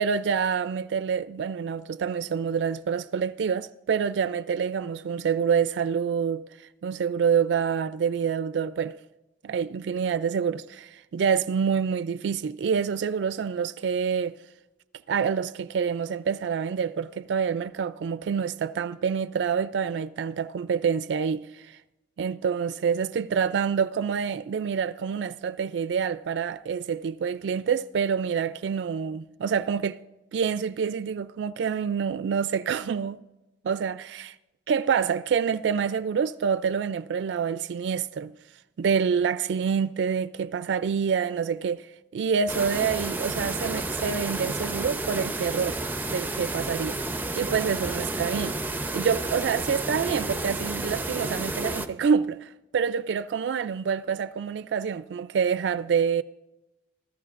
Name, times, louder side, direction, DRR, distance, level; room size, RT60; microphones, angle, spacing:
voice 1, 0.0-6.5 6.8-9.0 9.4-14.4 15.1-21.8 22.2-30.0 30.3-33.2 33.6-34.3 34.7-38.3 38.8-45.8 46.1-47.0 47.4-48.5 48.9-56.2, right 6 dB, 80° right, 0.3 m, -27 dB
sound 1, 42.5-51.9, right 2 dB, 10° right, 0.6 m, -31 dB
25.0 x 14.0 x 2.5 m
head